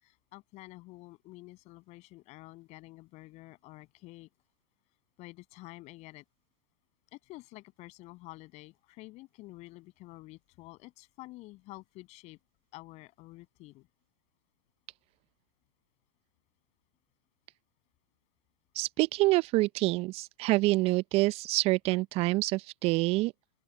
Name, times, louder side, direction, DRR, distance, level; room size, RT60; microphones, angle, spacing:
voice 1, 0.0-4.3 5.2-6.2 7.1-12.4 12.7-13.9, left 20 dB, 40° left, 7.1 m, -49 dB
voice 2, 18.8-23.3, right 21 dB, 35° right, 0.6 m, -27 dB
open air
hypercardioid pair, 105°, 17 cm